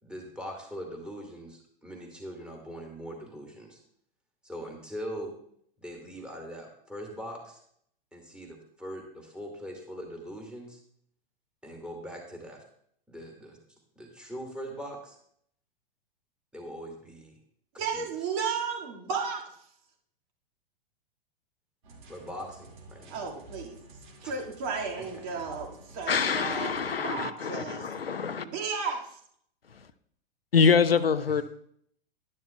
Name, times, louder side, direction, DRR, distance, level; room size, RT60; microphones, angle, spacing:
voice 1, 0.0-3.8 4.4-5.3 5.8-7.6 8.1-10.8 11.6-12.6 13.1-13.6 14.0-15.2 16.5-17.3 17.9-18.1 22.1-23.2 24.2-24.3 25.0-25.2 27.6-27.8 30.6-30.7 31.3-31.4, equal, 5° right, 2.2 m, -41 dB
voice 2, 17.8-19.4 23.1-23.8 24.2-27.8 28.4-29.2, right 5 dB, 40° right, 2.0 m, -34 dB
sound 1, 21.8-27.0, right 2 dB, 55° right, 2.1 m, -51 dB
voice 3, 26.1-28.5 30.5-31.4, left 6 dB, 80° left, 0.6 m, -25 dB
11.0 x 11.0 x 2.3 m
figure-of-eight pair, 100°, 29 cm